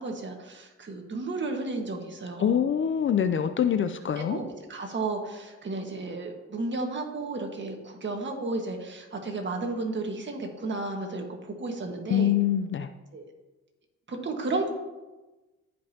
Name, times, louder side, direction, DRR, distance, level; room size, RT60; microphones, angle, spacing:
voice 1, 0.0-2.6 4.2-12.3 13.1-13.2 14.1-14.7, right 3 dB, 40° right, 3 dB, 1.6 m, -33 dB
voice 2, 2.4-4.4 12.1-12.9, left 9 dB, 40° left, 10 dB, 0.5 m, -24 dB
15.5 x 5.3 x 2.9 m, 1.1 s
cardioid pair, 90°, 30 cm